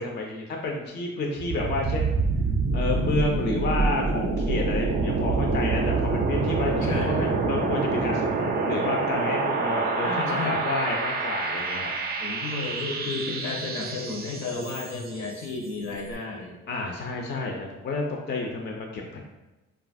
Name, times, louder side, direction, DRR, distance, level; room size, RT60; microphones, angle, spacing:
voice 1, 0.0-2.2 2.7-11.9 16.7-19.2, left 2 dB, 35° left, 0 dB, 0.5 m, -30 dB
sound 1, 1.4-15.2, right 3 dB, 35° right, 0.4 m, -27 dB
voice 2, 6.8-7.2 10.0-10.6 12.2-16.6, left 3 dB, 65° left, 0 dB, 0.8 m, -32 dB
2.9 x 2.3 x 2.5 m, 1.1 s
cardioid pair, 90°, 30 cm